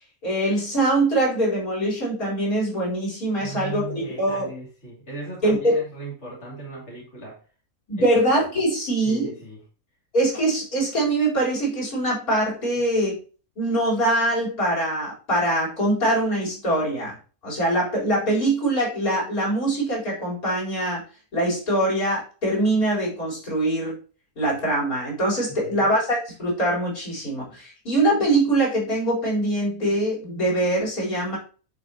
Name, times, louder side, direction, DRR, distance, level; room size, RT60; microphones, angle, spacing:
voice 1, 0.2-4.5 5.4-5.7 7.9-9.3 10.1-13.2 13.6-17.2 17.4-21.0 21.3-24.0 24.4-31.4, right 1 dB, 85° left, -4 dB, 4.6 m, -23 dB
voice 2, 3.4-7.4 8.0-8.1 9.0-9.6 25.5-25.9, right 3 dB, 50° left, -4 dB, 3.1 m, -37 dB
11.0 x 5.2 x 2.9 m, 0.36 s
omnidirectional pair, 1.5 m